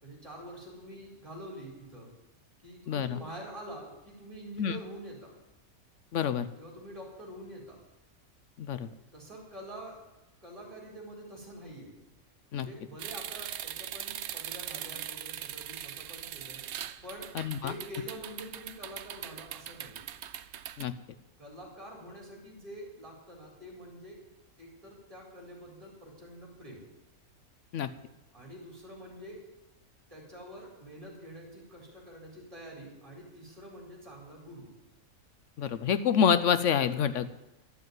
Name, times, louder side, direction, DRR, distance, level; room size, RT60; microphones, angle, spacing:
voice 1, 0.0-2.1 2.6-5.3 6.6-7.8 9.1-10.0 10.4-11.9 12.5-16.6 17.0-17.3 17.6-20.0 21.4-24.2 24.6-26.9 28.3-29.4 30.1-34.7, equal, 25° right, -2 dB, 3.8 m, -46 dB
voice 2, 2.9-3.2 4.6-4.8 6.1-6.5 8.6-8.9 12.5-12.7 17.3-17.7 20.8-20.9 27.7-27.9 35.6-37.3, left 8 dB, 65° left, 13 dB, 0.9 m, -27 dB
sound 1, 13.0-20.9, right 11 dB, 85° right, 1.1 m, -41 dB
12.0 x 7.7 x 9.4 m, 0.95 s
omnidirectional pair, 1.5 m